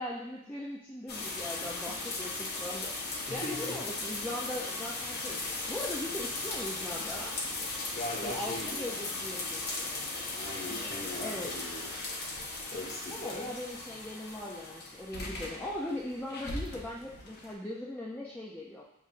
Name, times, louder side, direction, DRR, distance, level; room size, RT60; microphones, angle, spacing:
voice 1, 0.0-5.4 5.7-7.3 8.2-10.0 10.7-11.5 13.1-18.8, left 1 dB, 10° left, -6 dB, 0.4 m, -40 dB
sound 1, 1.1-17.5, left 2 dB, 50° left, 0.7 m, -38 dB
voice 2, 3.3-3.8 7.9-9.0 10.4-11.9 12.7-13.5, left 1 dB, 35° left, -3 dB, 1.0 m, -39 dB
7.1 x 2.5 x 2.4 m, 0.85 s
head